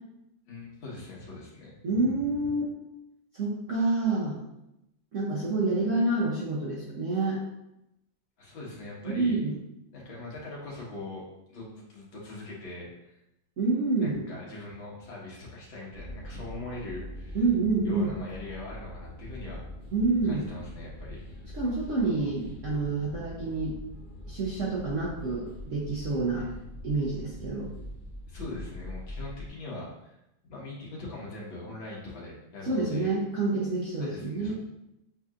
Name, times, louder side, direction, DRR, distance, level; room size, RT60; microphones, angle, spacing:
voice 1, 0.5-2.1 8.4-9.4 9.9-11.2 11.5-13.2 14.0-17.4 17.8-19.6 20.2-21.2 26.3-26.7 28.3-30.2 30.4-33.1 34.0-34.5, left 2 dB, 75° left, -5 dB, 2.1 m, -41 dB
voice 2, 1.8-2.6 3.3-4.4 5.1-7.4 9.0-9.5 13.6-14.2 17.3-18.1 19.9-20.5 21.5-23.8 24.3-26.5 26.8-27.7 32.6-34.5, right 3 dB, 60° right, -5 dB, 0.8 m, -28 dB
sound 1, 15.9-29.5, left 1 dB, 45° left, 0.7 m, -43 dB
7.6 x 2.8 x 2.4 m, 0.87 s
omnidirectional pair, 2.1 m